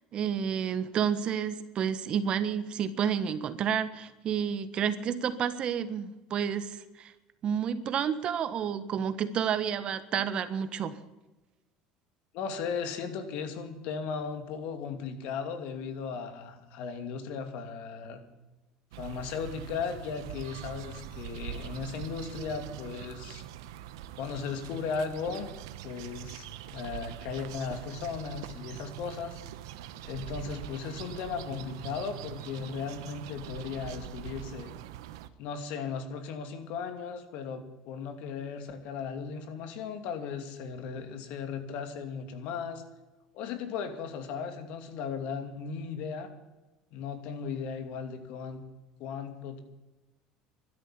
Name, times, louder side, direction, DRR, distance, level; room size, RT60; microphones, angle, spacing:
voice 1, 0.1-7.1 7.4-11.0, right 8 dB, 45° right, 13 dB, 1.3 m, -30 dB
voice 2, 12.3-18.2 19.0-23.4 24.1-25.5 25.8-29.4 30.0-34.7 35.4-42.8 43.3-46.3 46.9-48.6 49.0-49.6, left 6 dB, 70° left, 7 dB, 2.6 m, -36 dB
sound 1, 18.9-35.3, right 11 dB, 85° right, 1.0 m, -43 dB
12.5 x 10.5 x 9.7 m, 1.1 s
supercardioid pair, 105°, 2 cm